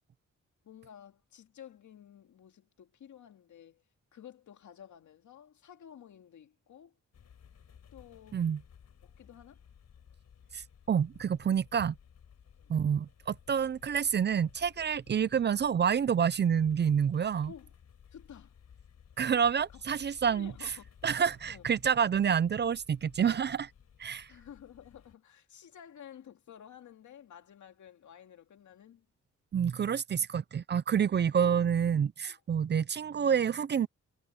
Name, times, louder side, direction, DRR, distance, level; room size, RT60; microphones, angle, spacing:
voice 1, 0.6-3.8 4.1-6.9 7.9-8.5 9.0-9.6 12.6-12.8 17.5-17.7 18.1-18.6 19.7-19.8 20.3-20.9 21.5-21.7 24.3-29.1 32.2-32.4, left 9 dB, 80° left, 2.3 m, -52 dB
sound 1, 7.1-25.2, left 7 dB, 60° left, 5.2 m, -58 dB
voice 2, 10.5-11.9 12.7-17.5 19.2-20.5 21.0-23.7 24.0-24.3 29.5-33.9, right 7 dB, 35° right, 0.4 m, -28 dB
wide cardioid pair, 145°, 29 cm